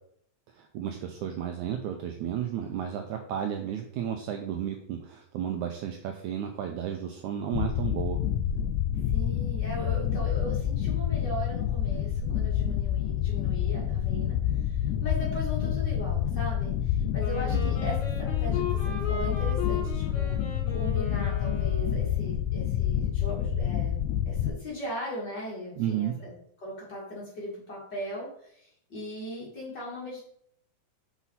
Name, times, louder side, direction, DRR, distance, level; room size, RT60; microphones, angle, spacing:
voice 1, 0.6-8.2 17.5-17.7 25.8-26.2, right 9 dB, 90° right, 4 dB, 1.7 m, -33 dB
sound 1, 7.5-24.5, left 10 dB, 85° left, 1.7 m, -28 dB
voice 2, 9.1-20.4 20.7-24.0 24.2-26.3 26.6-30.3, equal, 40° left, -5 dB, 1.8 m, -38 dB
Wind instrument woodwind instrument, 17.2-22.2, left 6 dB, 60° left, 3.2 m, -37 dB
5.9 x 5.8 x 4.1 m, 0.68 s
omnidirectional pair, 4.1 m